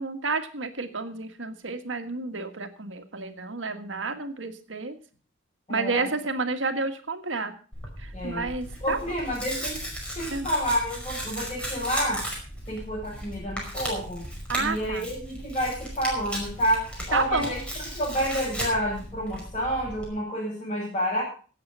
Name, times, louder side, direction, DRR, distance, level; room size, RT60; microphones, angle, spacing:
voice 1, 0.0-5.0 5.7-7.5 8.0-9.2 10.3-10.5 14.5-15.1 17.1-17.5, right 3 dB, 85° right, 7 dB, 1.7 m, -30 dB
voice 2, 5.7-6.1 8.1-8.5 8.8-9.8 10.1-12.2 12.7-14.3 14.6-17.6 17.9-21.2, equal, 30° left, -8 dB, 6.9 m, -29 dB
Tearing, 7.7-20.1, equal, 5° left, 5.2 m, -36 dB
17.5 x 7.7 x 5.5 m, 0.39 s
head